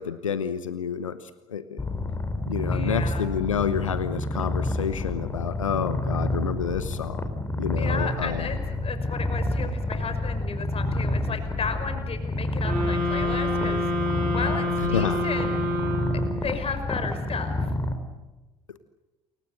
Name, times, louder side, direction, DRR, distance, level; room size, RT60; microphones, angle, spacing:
voice 1, 0.0-1.8 2.4-7.3 7.6-8.5 14.9-15.3, left 7 dB, 85° left, 14 dB, 0.9 m, -29 dB
Purr, 1.8-17.9, left 1 dB, 15° left, 4.6 m, -29 dB
voice 2, 2.7-3.3 7.8-15.6 16.4-17.6, left 5 dB, 35° left, 7 dB, 5.5 m, -34 dB
sound 1, 12.6-16.5, left 1 dB, 60° right, 7.8 m, -27 dB
28.5 x 24.0 x 6.7 m, 1.1 s
figure-of-eight pair, 55°, 16 cm